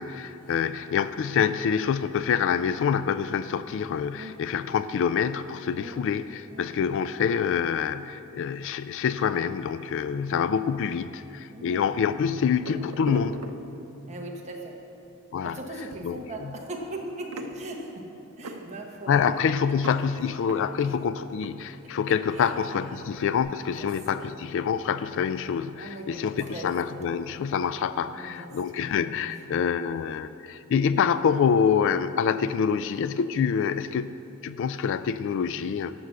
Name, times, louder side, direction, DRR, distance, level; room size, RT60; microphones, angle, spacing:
voice 1, 0.0-13.5 15.3-15.6 16.0-16.5 19.1-34.1 34.4-35.9, left 7 dB, 60° left, 13 dB, 0.3 m, -26 dB
voice 2, 11.5-11.8 14.1-14.8 15.4-18.1 18.4-19.2 19.9-20.0 22.3-23.1 23.7-23.9 24.2-24.3 24.6-24.7 25.8-26.7 28.1-28.9 29.2-29.4 29.7-30.2, right 1 dB, 30° right, 0 dB, 1.2 m, -39 dB
sound 1, 12.6-14.2 14.8-15.1 15.3-22.5 22.8-23.4, right 2 dB, 80° right, 0.8 m, -41 dB
11.5 x 6.1 x 6.8 m, 2.9 s
head